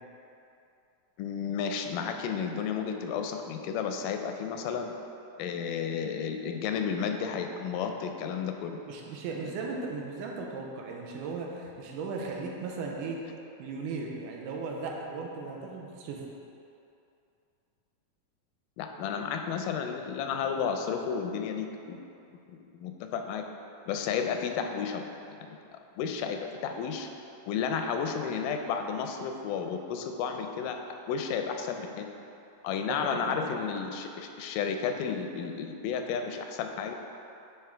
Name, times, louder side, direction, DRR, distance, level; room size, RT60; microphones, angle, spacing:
voice 1, 1.2-4.9 5.4-8.8 18.8-22.0 22.7-23.4 23.9-25.6 26.0-27.1 27.5-30.8 31.1-32.1 32.6-36.9, left 6 dB, 90° left, 5 dB, 2.2 m, -32 dB
voice 2, 8.9-13.2 13.6-16.2 32.9-33.5, right 4 dB, 90° right, -1 dB, 2.3 m, -37 dB
9.3 x 3.7 x 4.5 m, 2.7 s
omnidirectional pair, 3.7 m